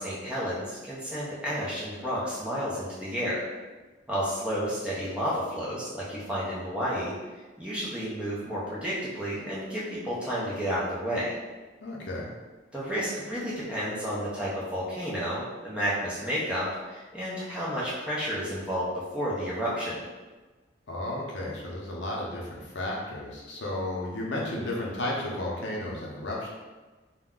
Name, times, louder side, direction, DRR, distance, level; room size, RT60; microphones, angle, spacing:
voice 1, 0.0-3.4 4.1-7.1 7.6-11.4 12.7-18.9 19.1-20.0, equal, 5° right, -8 dB, 0.5 m, -31 dB
voice 2, 11.8-12.3 20.9-26.5, left 1 dB, 65° left, -3 dB, 0.6 m, -33 dB
2.4 x 2.1 x 3.6 m, 1.3 s
head